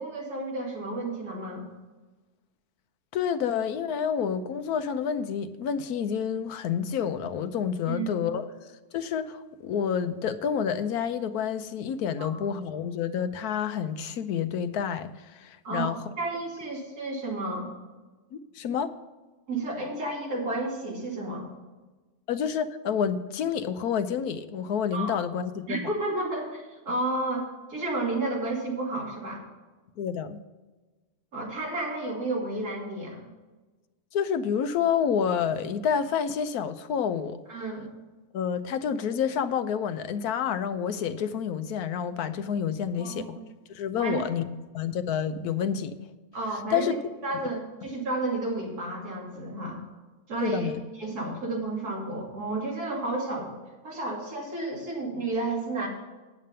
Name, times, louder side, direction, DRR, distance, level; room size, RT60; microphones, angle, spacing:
voice 1, 0.0-1.6 7.9-8.1 12.2-12.3 15.6-17.7 19.5-21.5 24.9-25.2 25.7-27.4 27.7-29.4 31.3-33.3 37.5-37.9 43.0-43.2 44.0-44.2 46.3-46.9 47.2-49.8 50.3-50.7 51.0-53.5 53.8-55.9, right 2 dB, 90° right, 3.3 m, -31 dB
voice 2, 3.1-8.5 8.9-16.0 18.3-18.9 22.3-25.9 30.0-30.4 34.1-37.6 38.3-43.4 43.7-44.5 44.7-46.0 46.7-46.9 50.4-50.8, left 7 dB, 85° left, 1.2 m, -29 dB
9.0 x 8.5 x 5.5 m
omnidirectional pair, 1.6 m